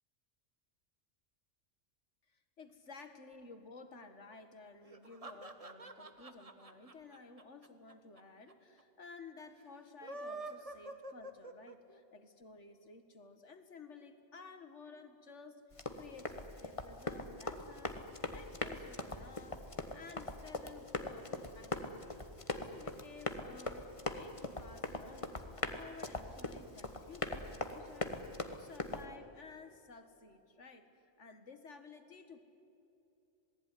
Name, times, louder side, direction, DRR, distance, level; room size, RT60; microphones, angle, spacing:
voice 1, 2.3-15.6 16.0-19.6 19.9-22.1 22.5-25.5 25.8-28.2 28.5-30.9 31.2-32.4, left 4 dB, 85° left, 8 dB, 2.2 m, -54 dB
sound 1, 4.9-8.2 8.5-8.6 8.8-8.9 9.9-12.0, right 2 dB, 30° right, 1.4 m, -47 dB
Run, 15.7-29.0, left 2 dB, 30° left, 1.5 m, -41 dB
27.5 x 19.0 x 9.9 m, 2.7 s
omnidirectional pair, 1.2 m